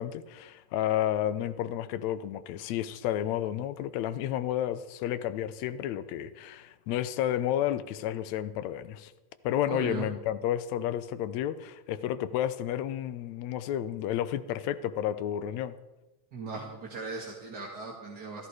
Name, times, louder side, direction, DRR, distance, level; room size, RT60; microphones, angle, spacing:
voice 1, 0.0-9.1 9.4-15.7, left 11 dB, 75° left, 13 dB, 1.7 m, -31 dB
voice 2, 9.7-10.1 16.3-18.5, right 4 dB, 35° right, -2 dB, 1.9 m, -38 dB
17.5 x 14.0 x 4.9 m, 1.0 s
omnidirectional pair, 3.9 m